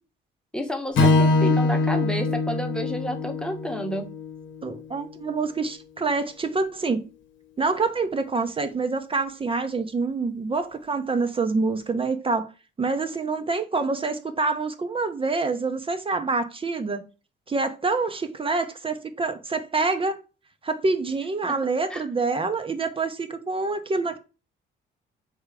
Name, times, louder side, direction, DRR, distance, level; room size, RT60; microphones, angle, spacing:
voice 1, 0.5-4.1 21.9-22.0, equal, 5° left, 0.9 m, -30 dB
Strum, 1.0-5.3, left 2 dB, 70° left, 0.9 m, -23 dB
voice 2, 4.6-7.0 7.6-12.5 12.8-17.0 17.5-20.2 20.6-24.2, right 3 dB, 25° right, 0.5 m, -26 dB
3.4 x 2.8 x 4.7 m
cardioid pair, 90°, 20 cm